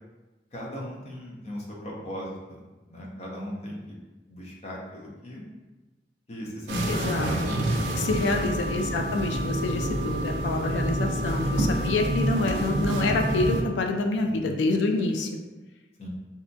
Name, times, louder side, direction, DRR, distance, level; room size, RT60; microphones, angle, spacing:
voice 1, 0.5-2.6 2.9-4.0 4.3-5.4 6.3-7.7 7.9-8.8 14.2-14.6 16.0-16.1, equal, 35° left, -3 dB, 0.5 m, -38 dB
sound 1, 6.7-13.6, right 1 dB, 80° right, 0.4 m, -27 dB
voice 2, 6.9-7.3 7.9-15.3, left 3 dB, 90° left, 4 dB, 0.3 m, -27 dB
2.7 x 2.2 x 2.6 m, 1.1 s
head